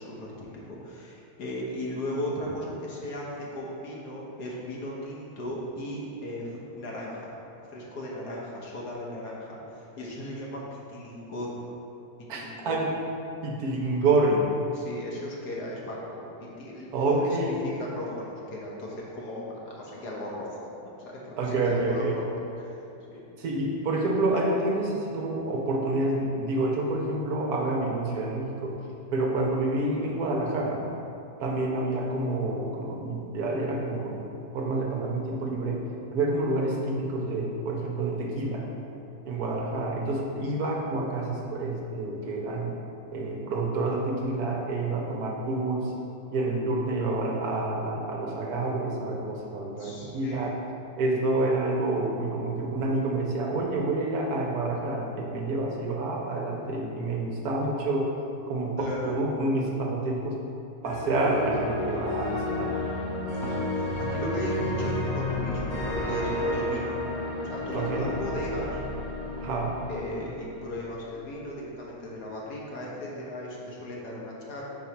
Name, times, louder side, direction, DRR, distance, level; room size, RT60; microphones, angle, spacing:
voice 1, 0.0-7.3 7.7-11.6 12.3-12.8 14.7-16.2 16.6-20.7 21.0-22.2 23.0-23.2 39.5-39.6 49.8-50.5 58.8-59.2 63.4-65.8 66.0-66.9 67.5-68.9 69.9-74.6, left 1 dB, 65° left, -4 dB, 1.5 m, -36 dB
voice 2, 12.3-13.0 13.4-14.5 16.9-17.6 21.4-22.2 23.4-28.8 29.1-30.9 31.4-35.8 36.1-38.7 39.2-42.8 43.1-45.9 46.3-50.6 51.0-58.1 58.5-60.4 60.8-62.9 67.7-68.2 69.4-69.8, right 2 dB, 70° right, -1 dB, 1.1 m, -28 dB
sound 1, 60.8-70.9, left 1 dB, 90° left, 1.9 m, -31 dB
4.7 x 4.0 x 5.8 m, 2.8 s
omnidirectional pair, 1.9 m